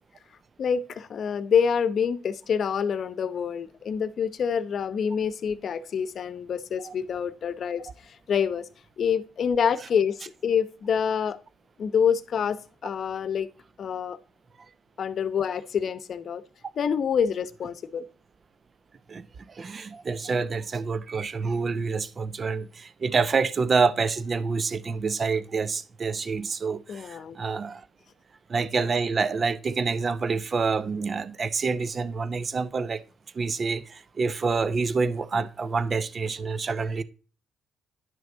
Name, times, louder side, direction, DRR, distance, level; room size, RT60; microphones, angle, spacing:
voice 1, 0.6-8.7 9.0-11.4 11.8-13.5 13.8-14.2 15.0-16.4 16.8-18.1 26.9-27.4 35.3-35.5, left 7 dB, 55° left, 0.8 m, -27 dB
voice 2, 19.6-27.8 28.5-33.0 33.4-37.0, right 4 dB, 40° right, 0.8 m, -27 dB
10.5 x 6.1 x 3.9 m
cardioid pair, 90°, 0 cm